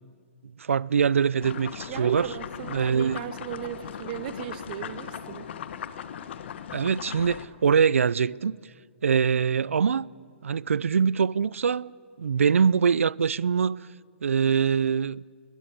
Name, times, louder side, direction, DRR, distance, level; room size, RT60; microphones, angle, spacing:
voice 1, 0.6-2.3 2.7-3.2 6.7-8.6 9.0-10.1 10.4-11.9 12.2-13.9 14.2-15.2, right 6 dB, 90° right, 0.5 m, -23 dB
sound 1, 1.4-7.5, left 9 dB, 60° left, 1.4 m, -38 dB
voice 2, 1.9-5.5, right 12 dB, 45° right, 1.6 m, -36 dB
21.0 x 20.5 x 8.6 m
hypercardioid pair, 145°, 7 cm